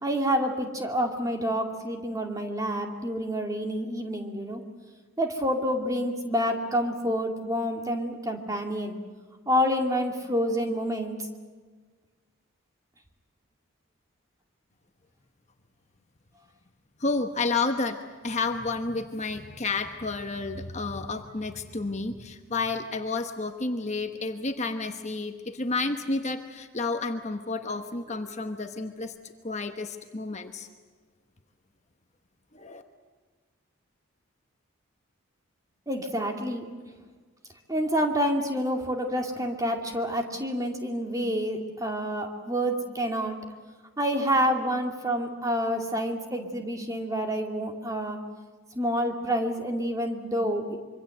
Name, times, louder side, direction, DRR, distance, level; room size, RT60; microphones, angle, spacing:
voice 1, 0.0-4.6 5.2-9.0 9.5-11.2 35.9-36.6 37.7-43.4 44.0-48.2 48.7-50.8, equal, 15° right, 3 dB, 2.4 m, -28 dB
voice 2, 17.0-18.0 18.2-29.1 29.4-30.7 32.5-32.8, left 3 dB, 30° left, 6 dB, 1.1 m, -30 dB
25.5 x 24.0 x 7.9 m, 1.5 s
head